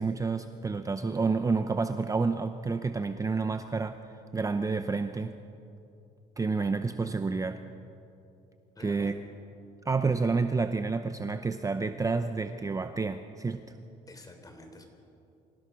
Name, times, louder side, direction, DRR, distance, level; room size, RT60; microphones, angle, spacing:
voice 1, 0.0-4.0 4.3-5.3 6.4-7.6 8.8-9.1 9.8-13.6, right 4 dB, 20° right, 9 dB, 0.7 m, -29 dB
voice 2, 8.8-9.1 14.1-14.9, left 1 dB, 20° left, 5 dB, 3.6 m, -49 dB
25.5 x 16.5 x 6.2 m, 2.7 s
cardioid pair, 110°, 17 cm